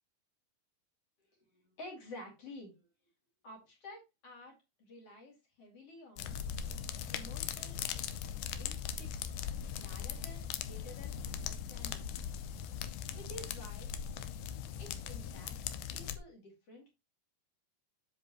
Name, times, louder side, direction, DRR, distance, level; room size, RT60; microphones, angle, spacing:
voice 1, 1.5-2.8 3.4-6.4 7.1-7.8 8.6-9.1 9.8-12.1 13.1-13.9 14.8-15.5 15.9-16.9, left 1 dB, 40° left, 1 dB, 3.1 m, -51 dB
sound 1, 6.2-16.2, left 8 dB, 80° left, 1.8 m, -40 dB
7.6 x 7.4 x 2.9 m, 0.23 s
omnidirectional pair, 4.5 m